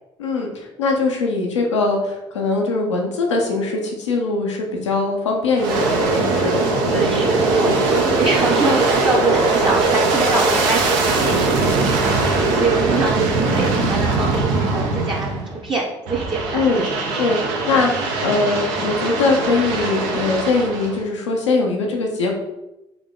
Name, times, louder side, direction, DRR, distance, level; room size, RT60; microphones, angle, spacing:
voice 1, 0.2-7.2 7.6-7.8 16.5-16.8 17.2-22.3, left 3 dB, 90° left, 1 dB, 0.7 m, -22 dB
Aircraft, 5.6-15.6 16.1-21.0, right 3 dB, 75° right, 0.8 m, -20 dB
voice 2, 6.9-16.9 17.7-17.9, right 3 dB, 35° right, -4 dB, 0.9 m, -24 dB
3.6 x 3.5 x 3.6 m, 0.95 s
hypercardioid pair, 55°, 15 cm